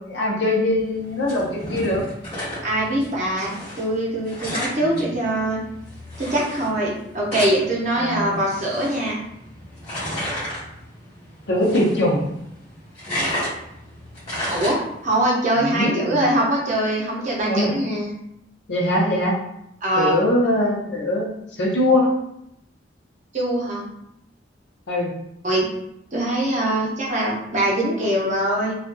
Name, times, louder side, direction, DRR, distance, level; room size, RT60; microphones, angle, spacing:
voice 1, 0.1-2.1 4.8-5.0 8.0-8.4 11.5-12.2 15.6-16.2 17.5-17.7 18.7-19.3 20.0-21.3 21.6-22.1 24.9-25.1, left 1 dB, 70° left, -2 dB, 0.7 m, -21 dB
sound 1, 0.8-15.3, equal, 35° left, 1.3 m, -33 dB
voice 2, 2.6-5.6 6.2-9.2 14.5-18.1 19.8-20.2 23.3-23.8 25.4-25.7 26.1-28.7, right 1 dB, 45° right, -4 dB, 0.7 m, -23 dB
2.6 x 2.4 x 2.2 m, 0.79 s
head